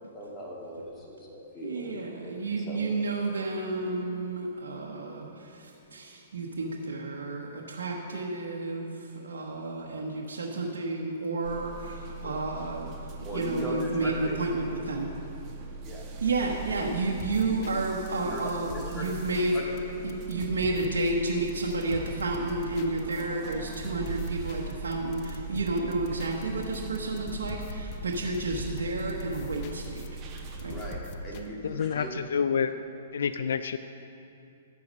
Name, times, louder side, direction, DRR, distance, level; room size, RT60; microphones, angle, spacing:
voice 1, 0.1-2.3 2.7-3.0 12.2-12.4 13.2-14.4 15.8-16.1 17.7-17.8 18.2-18.4 18.7-19.0 19.5-19.6 30.7-31.0 31.2-32.1, equal, 15° left, -4 dB, 2.3 m, -38 dB
voice 2, 1.6-15.2 16.2-19.6 20.0-30.2 30.6-30.8, right 2 dB, 85° right, -2 dB, 1.1 m, -31 dB
sound 1, 11.4-31.0, right 3 dB, 30° right, 1.2 m, -41 dB
sound 2, 17.1-31.5, left 2 dB, 40° left, 0.8 m, -43 dB
voice 3, 31.6-32.8 33.1-33.8, left 6 dB, 75° left, 12 dB, 0.3 m, -28 dB
11.5 x 8.5 x 5.3 m, 2.7 s
hypercardioid pair, 140°, 0 cm